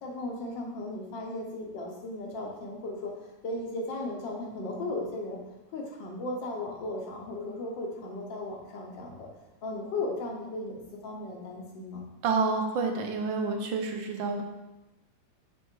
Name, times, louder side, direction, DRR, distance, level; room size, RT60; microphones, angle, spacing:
voice 1, 0.0-5.4 5.7-9.3 9.6-12.0, left 2 dB, 80° left, 0 dB, 1.7 m, -36 dB
voice 2, 12.2-14.4, right 4 dB, 85° right, 4 dB, 1.5 m, -28 dB
6.2 x 3.3 x 4.6 m, 1.1 s
omnidirectional pair, 2.0 m